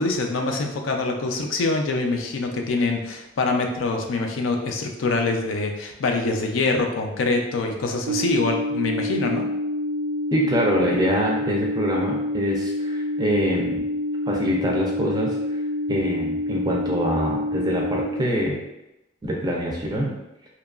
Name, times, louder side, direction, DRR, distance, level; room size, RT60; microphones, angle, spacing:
voice 1, 0.0-9.5, left 3 dB, 80° left, 3 dB, 0.4 m, -24 dB
sound 1, 8.1-18.1, left 1 dB, 85° right, 0.4 m, -27 dB
voice 2, 10.3-13.9 14.3-15.3 15.9-18.6 19.2-20.1, equal, 20° right, -1 dB, 0.4 m, -24 dB
2.8 x 2.2 x 2.3 m, 0.92 s
head